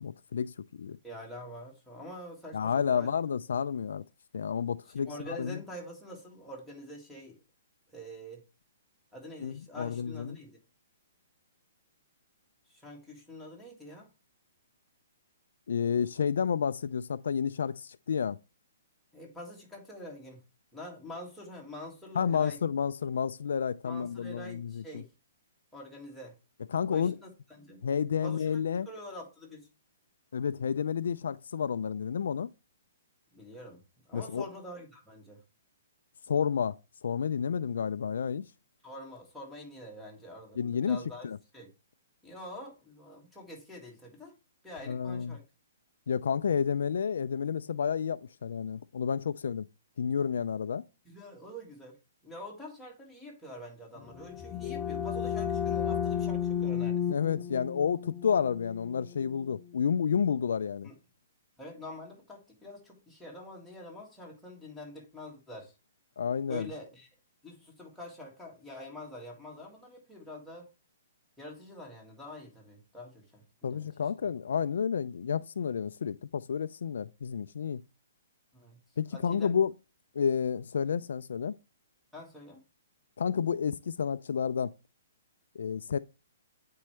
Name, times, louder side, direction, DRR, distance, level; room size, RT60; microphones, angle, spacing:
voice 1, 0.0-1.0 2.5-4.0 4.3-5.1 5.4-5.6 9.4-10.4 15.7-18.4 22.2-24.8 26.7-27.2 27.8-28.9 30.3-32.5 34.1-34.4 36.3-38.5 40.6-41.0 41.2-41.4 44.9-45.4 46.1-49.6 50.0-50.8 57.1-60.9 66.2-66.7 73.6-77.8 79.0-79.7 80.2-81.5 83.2-84.7 85.6-86.0, left 7 dB, 75° left, 0.3 m, -30 dB
voice 2, 1.0-3.1 5.0-7.4 7.9-8.4 9.1-10.6 12.7-14.1 19.1-20.4 20.7-22.6 23.8-25.1 25.7-26.4 26.9-27.8 28.2-28.5 28.9-29.7 33.3-35.4 38.8-41.3 41.5-41.7 42.2-44.4 44.6-45.4 51.1-52.0 52.2-57.1 60.8-60.9 61.6-65.7 66.5-67.1 67.4-70.7 71.4-73.9 74.2-74.3 78.5-78.8 79.1-79.5 82.1-82.6, left 1 dB, ahead, 1.9 m, -46 dB
sound 1, 54.0-59.6, left 8 dB, 25° left, 0.5 m, -33 dB
8.5 x 4.5 x 3.1 m
hypercardioid pair, 155°, 0 cm